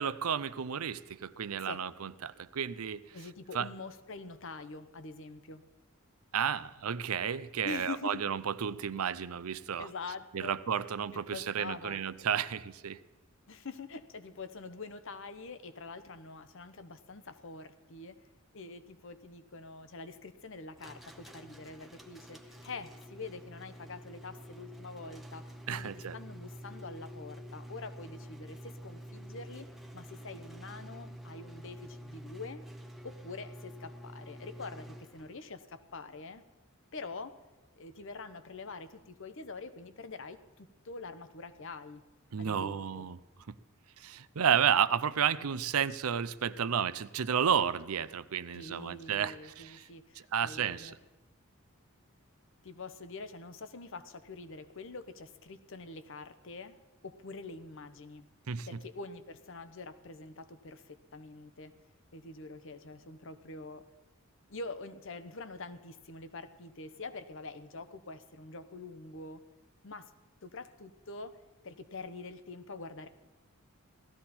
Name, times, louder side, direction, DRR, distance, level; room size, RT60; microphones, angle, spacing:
voice 1, 0.0-3.0 3.5-3.7 6.3-9.9 10.3-13.0 25.7-26.2 42.3-43.2 43.5-43.6 44.0-49.9 50.3-50.9 58.5-58.7, right 8 dB, 90° right, 16 dB, 0.6 m, -32 dB
voice 2, 3.1-5.6 7.6-8.2 9.8-10.6 11.1-12.0 13.5-18.2 18.5-29.7 29.9-32.6 33.0-36.4 36.9-37.4 37.8-42.0 42.4-43.1 48.5-50.9 52.6-56.8 57.0-58.3 58.7-61.7 62.1-63.9 64.5-69.4 69.8-70.1 70.4-71.4 71.6-73.1, left 3 dB, 60° left, 11 dB, 0.9 m, -45 dB
sound 1, 20.8-35.5, equal, ahead, 0.9 m, -48 dB
17.0 x 13.5 x 4.3 m, 1.2 s
head